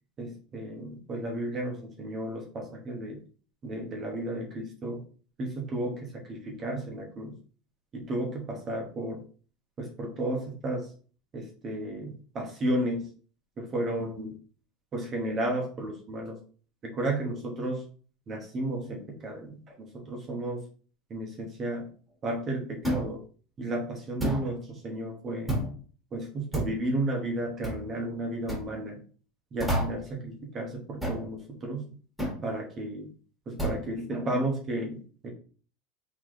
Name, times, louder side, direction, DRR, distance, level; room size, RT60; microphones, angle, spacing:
voice 1, 0.2-3.2 3.6-5.0 5.4-7.4 7.9-9.2 9.8-10.9 11.3-13.1 13.6-14.3 14.9-16.4 16.8-17.8 18.3-20.6 21.1-21.9 22.2-23.2 23.6-25.6 26.1-29.0 29.5-31.9 32.4-33.1 33.5-35.3, right 1 dB, 30° right, 0 dB, 1.0 m, -33 dB
sound 1, 22.8-23.2 24.2-24.5 25.5-25.8 26.5-26.8 27.6-27.9 28.5-28.7 29.6-30.1 31.0-31.3 32.2-32.4 33.6-33.9, right 1 dB, 5° right, 1.7 m, -30 dB
3.9 x 3.1 x 3.2 m, 0.41 s
supercardioid pair, 140°, 0 cm